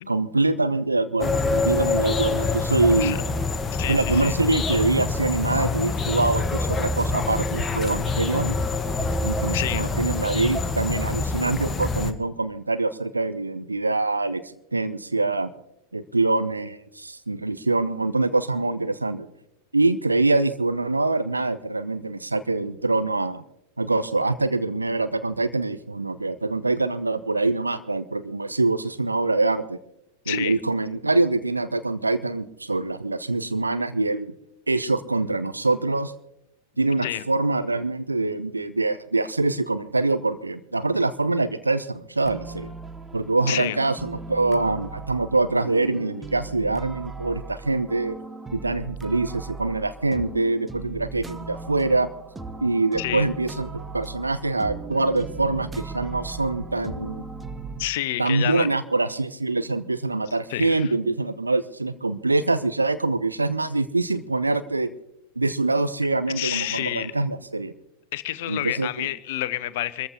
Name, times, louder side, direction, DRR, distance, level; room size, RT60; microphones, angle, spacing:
voice 1, 0.1-3.2 3.9-8.6 9.2-14.4 14.7-15.5 15.9-19.3 19.7-23.4 23.8-29.8 30.3-34.3 34.7-36.1 36.8-42.7 43.1-48.2 48.5-52.1 52.6-57.2 58.2-64.9 65.4-67.7 68.5-69.1, right 2 dB, 80° right, 11 dB, 0.9 m, -24 dB
sound 1, 1.2-12.1, left 3 dB, 15° left, 1.2 m, -26 dB
voice 2, 3.7-4.3 9.5-9.8 30.3-30.6 37.0-37.2 43.5-43.8 53.0-53.3 57.8-58.7 60.5-60.9 66.4-67.1 68.1-70.1, left 15 dB, 55° left, 16 dB, 0.8 m, -29 dB
sound 2, 42.2-57.9, right 4 dB, 10° right, 1.0 m, -38 dB
26.5 x 14.5 x 2.9 m, 0.83 s
figure-of-eight pair, 90°, 0 cm